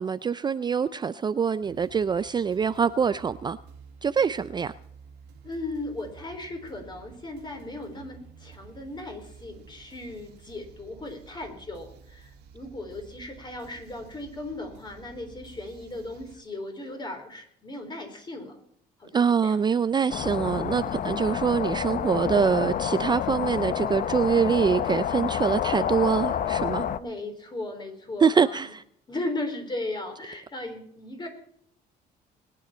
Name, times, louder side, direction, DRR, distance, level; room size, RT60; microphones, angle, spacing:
voice 1, 0.0-3.6 4.0-4.7 19.1-26.9 28.2-28.8, right 6 dB, 25° right, 0.4 m, -24 dB
sound 1, 1.6-16.4, right 6 dB, 80° right, 2.1 m, -51 dB
voice 2, 5.4-18.6 19.0-19.6 27.0-28.6 29.1-31.3, left 2 dB, 25° left, 4.0 m, -37 dB
sound 2, 20.1-27.0, left 9 dB, 55° left, 0.7 m, -28 dB
21.0 x 10.0 x 4.3 m
cardioid pair, 110°, 17 cm